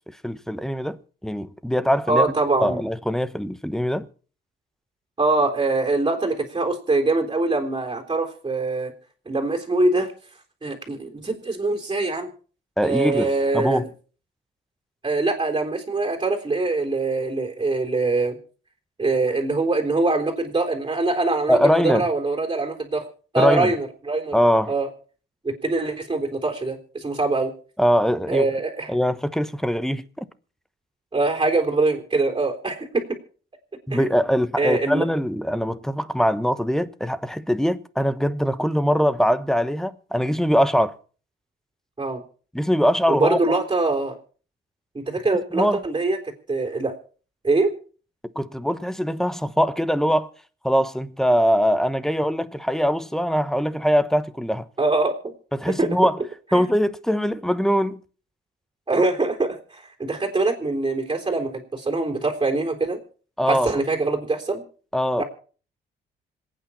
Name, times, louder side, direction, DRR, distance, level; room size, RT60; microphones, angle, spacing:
voice 1, 0.2-2.3 2.6-4.1 12.8-13.3 13.5-13.9 21.5-22.0 23.4-23.7 24.3-24.7 27.8-28.5 28.9-30.0 33.9-41.0 42.5-43.4 45.5-45.8 48.3-50.3 50.6-54.7 55.5-56.2 56.5-58.0 63.4-63.7 64.9-65.2, equal, ahead, 1.0 m, -22 dB
voice 2, 2.1-2.8 5.2-8.9 9.3-10.1 10.6-12.3 12.8-13.8 15.0-18.4 19.0-23.1 23.3-24.3 24.7-24.9 25.4-27.5 28.3-28.9 31.1-33.0 33.9-34.0 34.6-35.0 42.0-42.2 43.1-44.1 44.9-47.0 47.4-47.7 54.8-55.3 55.7-55.9 56.5-56.6 58.9-63.0 63.5-64.6 65.2-65.3, right 3 dB, 20° right, 3.6 m, -23 dB
26.5 x 9.0 x 4.2 m
cardioid pair, 90°, 20 cm